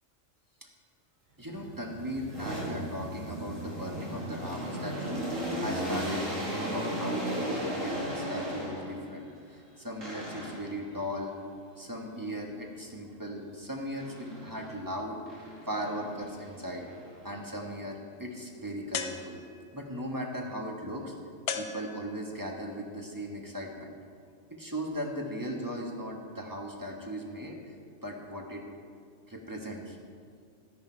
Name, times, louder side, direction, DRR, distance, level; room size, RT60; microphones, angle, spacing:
voice 1, 1.4-5.2 5.6-11.3 11.8-15.2 15.7-16.9 17.2-19.4 19.7-21.1 21.5-23.9 24.5-27.7 28.0-28.6 29.3-30.0, equal, 15° right, 0 dB, 1.4 m, -38 dB
sound 1, 1.5-9.1 10.0-10.8 14.0-14.8 15.3-17.6, equal, 85° right, 2.9 m, -36 dB
sound 2, 18.9-19.8 21.5-22.4, left 6 dB, 65° left, 1.0 m, -37 dB
13.0 x 10.5 x 4.5 m, 2.2 s
omnidirectional pair, 1.3 m